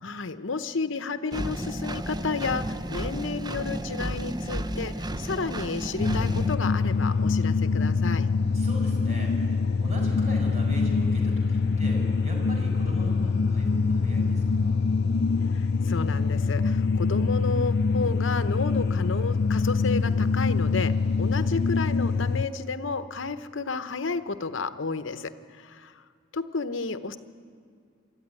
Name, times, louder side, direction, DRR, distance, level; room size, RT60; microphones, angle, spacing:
voice 1, 0.0-8.3 15.5-26.0 26.3-27.2, left 4 dB, 70° left, 11 dB, 0.9 m, -32 dB
Engine, 1.3-6.5, right 1 dB, 20° right, 0.6 m, -32 dB
sound 1, 6.0-22.5, left 4 dB, 55° left, 0.5 m, -24 dB
voice 2, 8.5-9.3 9.8-14.8, equal, 35° right, -1 dB, 5.6 m, -39 dB
25.0 x 13.5 x 9.7 m, 2.1 s
head